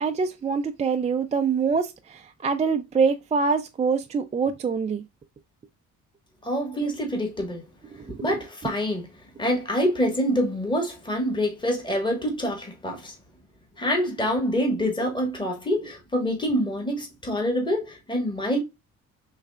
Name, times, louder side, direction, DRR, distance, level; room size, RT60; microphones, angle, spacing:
voice 1, 0.0-5.0 8.1-8.3, right 5 dB, 25° right, 0.3 m, -25 dB
voice 2, 6.4-7.6 8.1-9.1 9.4-13.1 13.8-18.6, equal, 15° left, 1.4 m, -26 dB
4.8 x 3.2 x 2.3 m
cardioid pair, 90°, 30 cm